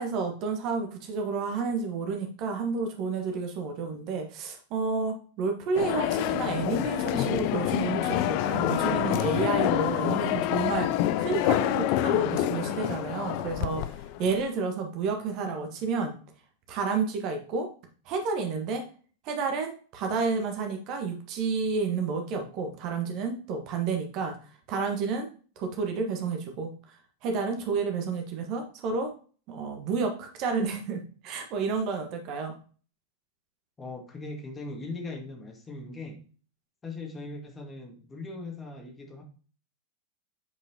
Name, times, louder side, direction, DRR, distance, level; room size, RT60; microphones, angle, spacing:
voice 1, 0.0-10.9 11.2-13.9 14.2-16.1 16.7-17.7 18.0-18.8 19.2-24.3 24.7-25.3 25.6-29.1 29.5-32.5, right 4 dB, 40° right, 4 dB, 1.3 m, -30 dB
sound 1, 5.7-14.4, left 12 dB, 45° left, 0.4 m, -27 dB
voice 2, 33.8-36.2 36.8-39.2, left 2 dB, 15° left, 2 dB, 1.7 m, -39 dB
8.0 x 5.2 x 2.8 m, 0.40 s
figure-of-eight pair, 90°, 0 cm